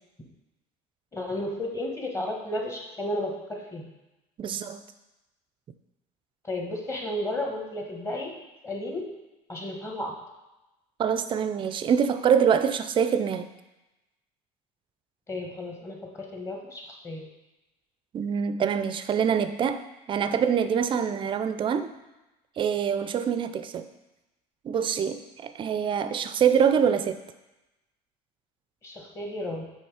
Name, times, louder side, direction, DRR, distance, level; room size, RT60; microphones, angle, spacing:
voice 1, 1.1-3.9 6.4-8.3 8.6-9.1 9.5-10.1 15.3-17.2 28.8-29.6, left 1 dB, 20° left, 0 dB, 1.2 m, -33 dB
voice 2, 4.4-4.8 11.0-13.5 18.1-19.8 20.1-21.9 22.6-23.9 24.6-27.2, right 7 dB, 35° right, 11 dB, 0.4 m, -25 dB
7.1 x 3.2 x 4.9 m, 1.0 s
cardioid pair, 120°, 16 cm